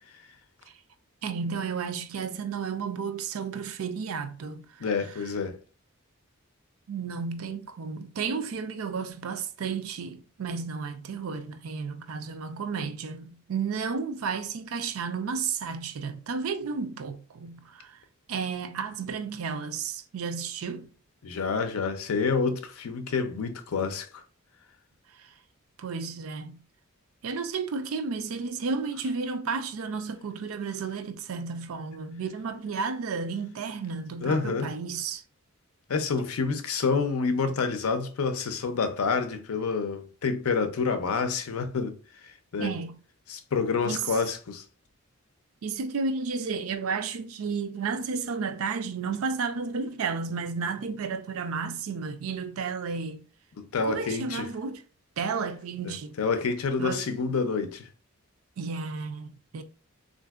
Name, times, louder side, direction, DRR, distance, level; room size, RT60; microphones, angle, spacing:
voice 1, 1.2-4.8 6.9-18.0 18.3-20.9 25.2-25.3 25.8-26.6 27.2-35.2 42.6-43.0 43.9-44.2 45.6-53.3 53.9-54.8 55.2-56.1 56.8-57.1 58.6-59.6, right 5 dB, 70° right, 0.4 m, -32 dB
voice 2, 4.8-5.6 21.2-24.2 34.2-34.7 35.9-42.0 42.2-42.7 43.3-44.6 53.6-54.5 55.9-57.9, left 4 dB, 80° left, 0.5 m, -28 dB
3.5 x 2.5 x 2.3 m
head